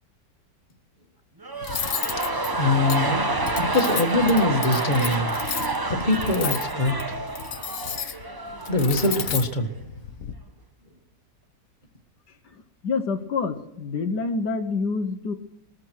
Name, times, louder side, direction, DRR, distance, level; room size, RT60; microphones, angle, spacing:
sound 1, 1.4-9.5 9.8-9.9, right 2 dB, 20° right, 0.7 m, -28 dB
Cutlery silverware, 1.6-10.3, left 8 dB, 55° left, 1.3 m, -33 dB
voice 1, 2.5-3.3 3.6-5.3 5.9-6.9 8.7-9.7, left 2 dB, 25° left, 3 dB, 1.9 m, -23 dB
voice 2, 12.5-15.3, left 4 dB, 70° left, 6 dB, 1.7 m, -27 dB
21.5 x 14.0 x 4.7 m, 0.76 s
omnidirectional pair, 1.9 m